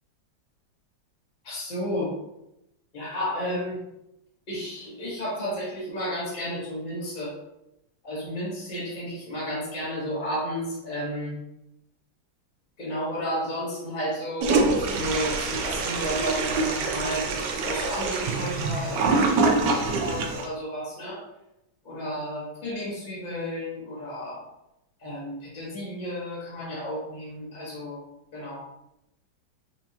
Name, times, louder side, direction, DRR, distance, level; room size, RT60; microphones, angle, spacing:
voice 1, 1.4-2.1 2.9-3.8 4.5-7.3 8.0-11.4 12.8-17.3 17.6-21.2 21.8-24.4 25.0-28.0 28.3-28.6, equal, 25° left, -7 dB, 1.3 m, -32 dB
Toilet flush, 14.4-20.5, right 3 dB, 75° right, 1.0 m, -25 dB
4.4 x 2.6 x 2.8 m, 0.87 s
omnidirectional pair, 2.2 m